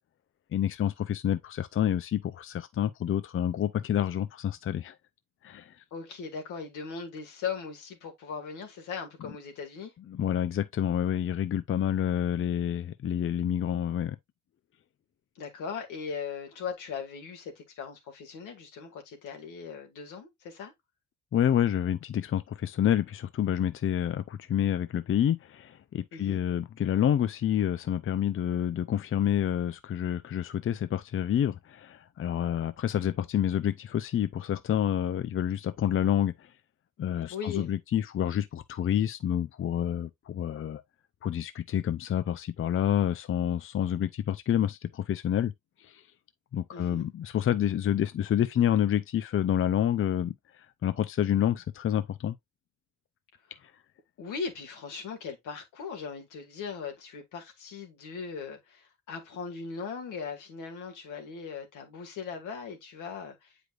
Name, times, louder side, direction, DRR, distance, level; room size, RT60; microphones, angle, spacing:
voice 1, 0.5-5.0 5.4-5.7 10.1-14.2 21.3-36.5 37.0-40.8 41.2-45.5 45.8-46.0 46.5-52.4, left 10 dB, 45° left, 0.6 m, -28 dB
voice 2, 5.9-9.9 15.4-20.7 26.1-26.4 37.3-37.7 46.7-47.1 54.2-63.6, left 6 dB, 85° left, 2.2 m, -39 dB
7.8 x 5.0 x 2.4 m
cardioid pair, 90°, 30 cm